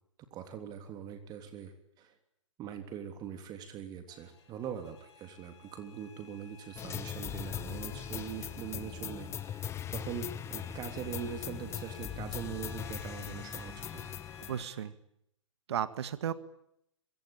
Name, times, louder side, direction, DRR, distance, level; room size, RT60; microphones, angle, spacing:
voice 1, 0.3-2.1 2.6-14.2, right 8 dB, 25° right, 7 dB, 3.2 m, -42 dB
sound 1, 4.1-14.9, left 6 dB, 60° left, 4.9 m, -54 dB
sound 2, 6.8-14.7, left 9 dB, 15° left, 1.0 m, -40 dB
voice 2, 14.5-14.9 15.7-16.3, right 9 dB, 55° right, 14 dB, 1.9 m, -34 dB
26.0 x 23.5 x 8.9 m, 0.76 s
figure-of-eight pair, 120°, 16 cm